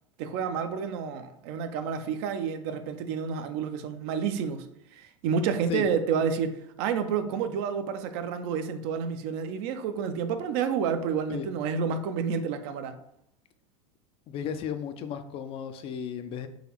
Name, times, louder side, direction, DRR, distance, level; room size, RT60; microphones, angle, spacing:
voice 1, 0.2-4.7 4.9-13.0, right 6 dB, 50° right, 9 dB, 0.4 m, -29 dB
voice 2, 14.3-16.5, left 8 dB, 35° left, 10 dB, 0.4 m, -34 dB
3.9 x 2.9 x 2.9 m, 0.76 s
hypercardioid pair, 85°, 17 cm